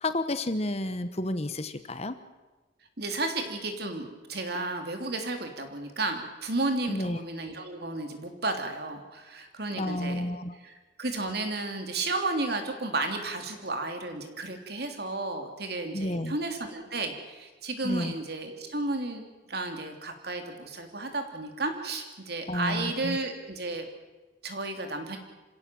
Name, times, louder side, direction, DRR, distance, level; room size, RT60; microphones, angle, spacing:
voice 1, 0.0-2.2 6.9-7.2 9.7-10.6 15.9-16.4 17.8-18.1 22.5-23.2, left 1 dB, 35° left, 11 dB, 1.1 m, -31 dB
voice 2, 3.0-10.2 10.5-23.9 24.4-25.2, right 2 dB, 55° right, 5 dB, 3.2 m, -33 dB
27.5 x 16.5 x 7.7 m, 1.2 s
head